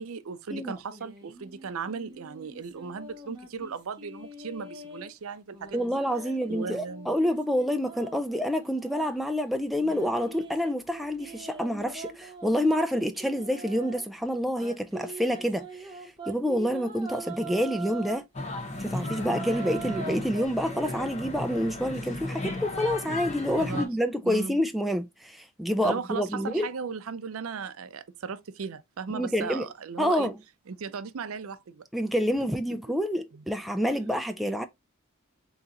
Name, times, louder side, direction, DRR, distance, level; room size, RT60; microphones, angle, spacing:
voice 1, 0.0-6.0 6.5-7.1 23.6-23.9 24.2-24.6 25.8-30.3 30.7-31.8 33.3-33.4, right 5 dB, 70° right, 0.5 m, -37 dB
sound 1, 0.9-5.1 5.5-9.3 9.8-14.0 14.6-18.2 18.7-20.5, right 3 dB, 20° right, 0.9 m, -43 dB
voice 2, 5.7-18.3 18.8-26.7 29.1-29.6 30.0-30.4 31.9-34.7, equal, ahead, 0.3 m, -28 dB
sound 2, 18.3-23.8, left 2 dB, 30° left, 0.8 m, -35 dB
3.9 x 2.9 x 3.6 m
head